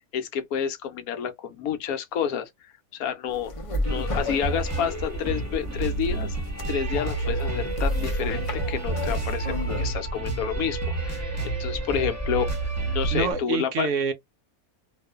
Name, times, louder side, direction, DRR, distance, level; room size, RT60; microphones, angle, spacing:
voice 1, 0.1-2.5 2.9-3.5 3.9-6.3 6.7-12.5 12.9-13.9, left 8 dB, 75° left, 1.1 m, -29 dB
sound 1, 3.3-9.9, left 1 dB, 45° left, 0.4 m, -33 dB
sound 2, 3.8-13.3, right 1 dB, 15° right, 0.9 m, -31 dB
sound 3, 5.7-13.4, right 5 dB, 85° right, 1.2 m, -33 dB
voice 2, 13.1-14.1, right 5 dB, 65° right, 0.8 m, -26 dB
2.6 x 2.4 x 2.3 m
omnidirectional pair, 1.6 m